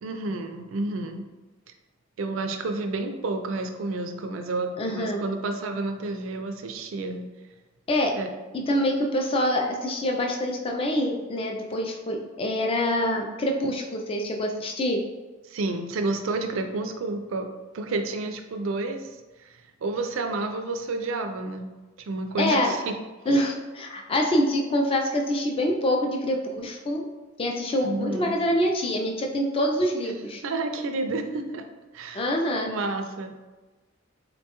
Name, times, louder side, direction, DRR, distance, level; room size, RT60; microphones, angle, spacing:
voice 1, 0.0-1.2 2.2-7.3 8.2-8.3 15.5-17.5 17.7-21.7 22.0-23.0 27.8-28.4 30.0-31.6 31.9-32.3 32.6-33.3, right 2 dB, 70° right, 6 dB, 0.4 m, -30 dB
voice 2, 4.8-5.2 7.9-8.1 8.5-15.0 22.4-22.8 23.3-27.0 27.4-30.4 32.1-32.7, left 1 dB, 25° left, 1 dB, 0.4 m, -25 dB
3.8 x 2.2 x 2.9 m, 1.2 s
head